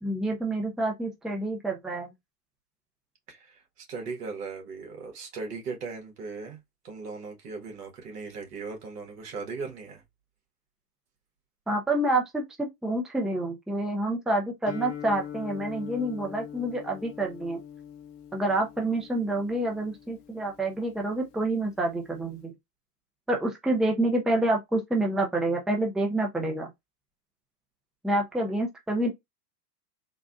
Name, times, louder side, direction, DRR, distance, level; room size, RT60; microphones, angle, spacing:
voice 1, 0.0-2.1 11.7-17.6 18.3-22.5 23.3-26.7 28.0-29.1, right 1 dB, ahead, 0.6 m, -28 dB
voice 2, 3.3-6.6 6.8-10.0, right 4 dB, 75° right, 1.7 m, -38 dB
Guitar, 14.7-22.4, left 9 dB, 45° left, 0.9 m, -43 dB
3.9 x 2.3 x 2.4 m
hypercardioid pair, 100°, 47 cm